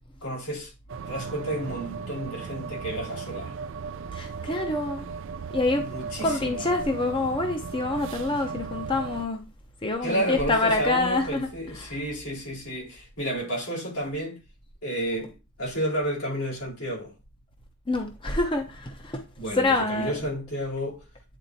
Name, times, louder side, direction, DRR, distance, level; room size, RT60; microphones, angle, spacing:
voice 1, 0.2-0.7 1.1-3.6 5.7-6.7 10.0-14.4 14.8-17.1 19.4-21.0, equal, 85° left, 4.3 m, -31 dB
sound 1, 0.9-9.3, right 5 dB, 55° right, 0.4 m, -36 dB
voice 2, 4.1-5.1 5.5-5.8 6.2-9.4 9.8-12.1 17.9-20.2, left 2 dB, 25° left, 0.7 m, -27 dB
9.1 x 4.1 x 2.7 m
head